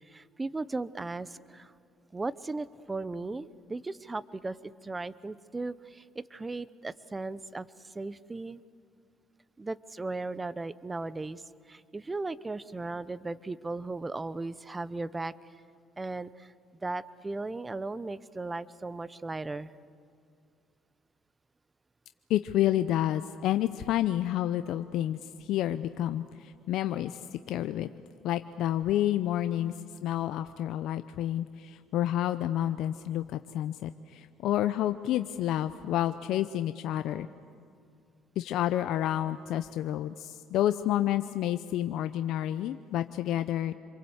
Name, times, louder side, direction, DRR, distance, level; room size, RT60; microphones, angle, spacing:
voice 1, 0.1-1.7 2.1-7.7 7.9-8.6 9.6-11.4 11.7-15.3 16.0-16.5 16.8-19.7 29.6-30.1, right 3 dB, 20° right, 17 dB, 0.8 m, -37 dB
voice 2, 22.3-27.9 28.2-29.7 30.0-37.3 38.4-43.7, left 12 dB, 70° left, 10 dB, 0.6 m, -29 dB
26.5 x 23.5 x 8.1 m, 2.4 s
supercardioid pair, 80°, 0 cm